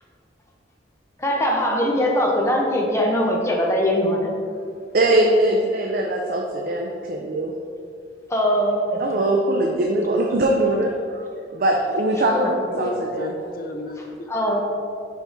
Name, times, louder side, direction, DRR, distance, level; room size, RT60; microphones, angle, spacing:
voice 1, 1.2-4.3 8.3-9.0 12.3-12.5 14.3-14.6, equal, 15° left, -1 dB, 0.7 m, -21 dB
voice 2, 4.9-7.5 9.0-11.3 11.5-13.3, right 1 dB, 50° right, 1 dB, 0.5 m, -21 dB
voice 3, 12.7-14.3, left 1 dB, 50° left, 5 dB, 0.5 m, -31 dB
5.0 x 4.9 x 3.8 m, 2.4 s
head